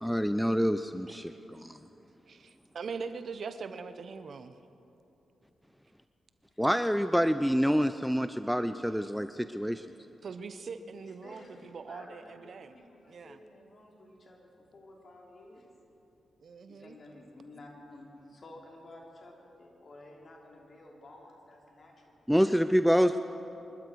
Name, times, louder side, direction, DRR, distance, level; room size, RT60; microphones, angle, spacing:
voice 1, 0.0-1.8 6.6-9.8 22.3-23.2, equal, ahead, 11 dB, 0.5 m, -27 dB
voice 2, 1.1-1.6 2.3-4.6 9.0-9.1 10.2-12.8 13.1-13.4 16.4-17.0, right 5 dB, 60° right, 11 dB, 0.8 m, -42 dB
voice 3, 11.0-14.4 14.7-15.7 16.7-22.2, left 2 dB, 50° left, -1 dB, 3.3 m, -52 dB
24.5 x 12.5 x 4.6 m, 2.9 s
supercardioid pair, 45°, 0 cm